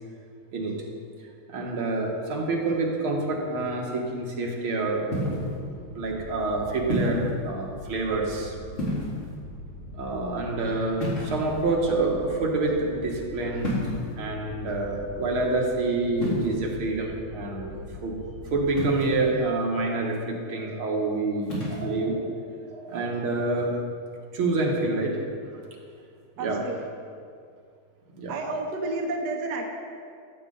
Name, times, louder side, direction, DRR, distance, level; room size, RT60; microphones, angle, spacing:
voice 1, 0.5-0.8 1.5-5.1 5.5-8.5 10.0-13.8 14.2-18.2 18.5-22.3 22.6-23.8 24.3-25.2 26.4-26.6 28.2-28.4, right 2 dB, 75° right, -1 dB, 2.2 m, -27 dB
sound 1, 5.1-5.5 6.9-7.3 8.7-9.4 11.0-11.7 13.6-14.1 16.2-16.5 18.8-19.3 21.4-21.8, equal, 35° left, 3.0 m, -29 dB
sound 2, 5.2-19.5, left 1 dB, 70° left, 2.3 m, -42 dB
voice 2, 26.4-26.8 28.3-29.6, right 2 dB, 55° right, 1 dB, 1.4 m, -30 dB
14.5 x 7.5 x 4.0 m, 2.2 s
omnidirectional pair, 2.4 m